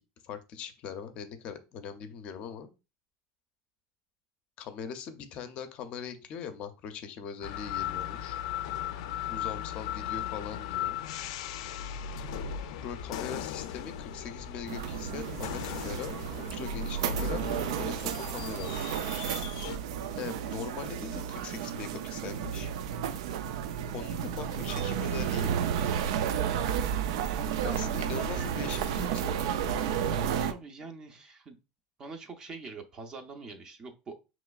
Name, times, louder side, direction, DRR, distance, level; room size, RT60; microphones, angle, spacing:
voice 1, 0.2-2.7 4.6-8.4 9.3-11.0 12.8-17.4 17.8-18.8 20.1-22.7 23.9-26.0 27.6-29.7, left 7 dB, 40° left, 9 dB, 0.5 m, -41 dB
sound 1, 7.4-19.8, left 7 dB, 85° left, 0.4 m, -37 dB
sound 2, 14.7-30.5, right 9 dB, 90° right, 0.4 m, -32 dB
voice 2, 30.4-31.6 32.0-34.2, right 4 dB, 20° right, 5 dB, 0.6 m, -44 dB
5.9 x 3.0 x 2.3 m, 0.29 s
cardioid pair, 165°, 3 cm